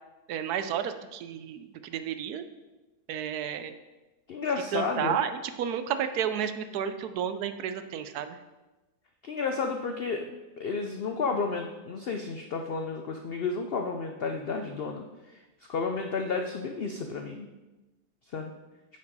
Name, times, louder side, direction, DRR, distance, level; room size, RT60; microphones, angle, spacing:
voice 1, 0.3-2.4 3.1-3.7 4.7-8.4, right 9 dB, 80° right, 10 dB, 1.1 m, -32 dB
voice 2, 4.3-5.2 9.2-10.3 10.6-15.4 15.7-17.5 18.3-18.5, left 4 dB, 75° left, 4 dB, 0.5 m, -32 dB
9.2 x 5.2 x 4.1 m, 1.1 s
omnidirectional pair, 1.7 m